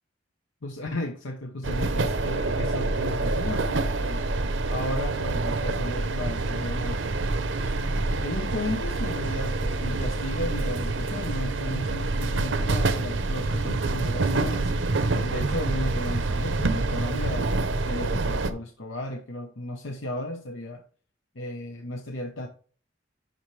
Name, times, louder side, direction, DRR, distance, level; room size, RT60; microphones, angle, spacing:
voice 1, 0.6-4.4 4.7-7.8 8.2-14.9 15.2-17.5 17.8-20.8 21.3-22.5, left 1 dB, 85° left, 1.0 m, -34 dB
sound 1, 1.6-18.5, right 2 dB, 75° right, 0.8 m, -27 dB
11.5 x 4.4 x 3.3 m
head